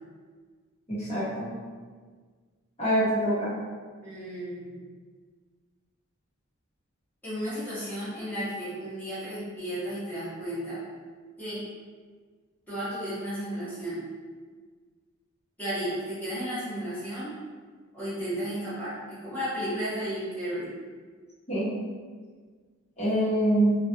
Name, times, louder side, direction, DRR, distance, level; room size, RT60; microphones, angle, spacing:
voice 1, 0.9-1.5 2.8-3.6 21.5-21.7 23.0-23.8, right 1 dB, 30° left, -10 dB, 1.2 m, -25 dB
voice 2, 4.0-4.8 7.2-10.8 11.4-11.7 12.7-14.0 15.6-17.3 17.9-20.7, equal, 10° left, -12 dB, 1.3 m, -33 dB
3.2 x 2.4 x 2.6 m, 1.5 s
head